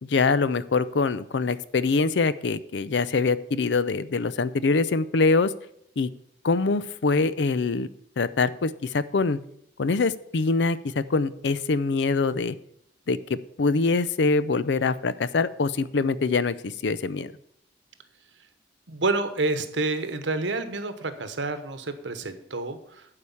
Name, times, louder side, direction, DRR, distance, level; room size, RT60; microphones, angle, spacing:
voice 1, 0.0-5.5 6.0-6.1 6.4-7.9 8.2-9.4 9.8-12.6 13.1-17.3, left 4 dB, 75° left, 16 dB, 0.5 m, -24 dB
voice 2, 18.9-23.1, right 2 dB, 85° right, 10 dB, 1.1 m, -28 dB
11.5 x 4.9 x 7.1 m, 0.71 s
head